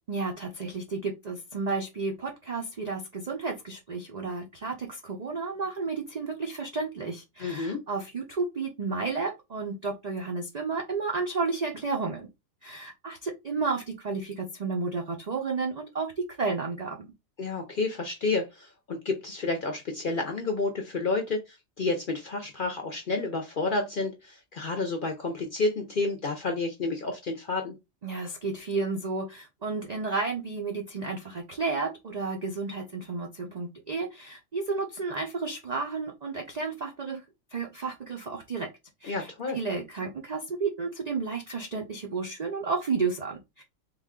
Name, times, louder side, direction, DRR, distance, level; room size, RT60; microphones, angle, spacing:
voice 1, 0.1-12.3 12.6-16.1 16.4-17.1 28.0-37.2 37.5-38.7 39.0-39.3 39.5-43.6, right 4 dB, 60° right, 0.4 m, -32 dB
voice 2, 7.4-7.8 17.4-27.8 39.0-39.6, left 3 dB, 55° left, 0.6 m, -30 dB
3.5 x 2.2 x 3.6 m
omnidirectional pair, 1.5 m